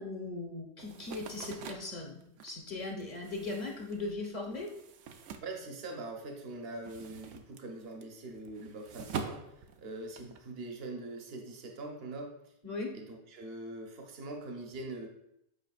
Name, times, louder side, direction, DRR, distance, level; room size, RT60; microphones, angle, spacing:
voice 1, 0.0-4.7 12.6-12.9, left 3 dB, 40° left, -1 dB, 1.2 m, -39 dB
sound 1, 0.8-6.2 6.5-10.4, right 6 dB, 85° right, 1.0 m, -45 dB
voice 2, 5.4-12.5 12.9-15.1, right 2 dB, 60° right, 2 dB, 1.1 m, -43 dB
8.3 x 5.0 x 2.4 m, 0.80 s
omnidirectional pair, 1.2 m